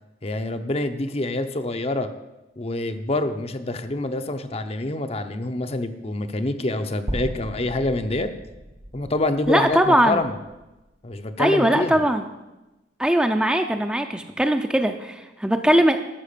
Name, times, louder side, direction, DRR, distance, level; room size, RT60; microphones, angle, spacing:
voice 1, 0.2-2.1 2.6-8.3 8.9-10.3 11.0-12.0, left 2 dB, 35° left, 8 dB, 0.7 m, -26 dB
sound 1, 7.1-11.3, equal, 30° right, 0.8 m, -36 dB
voice 2, 9.5-10.2 11.4-12.3 13.0-16.0, right 1 dB, 5° right, 5 dB, 0.6 m, -20 dB
13.0 x 6.2 x 6.8 m, 1.0 s
head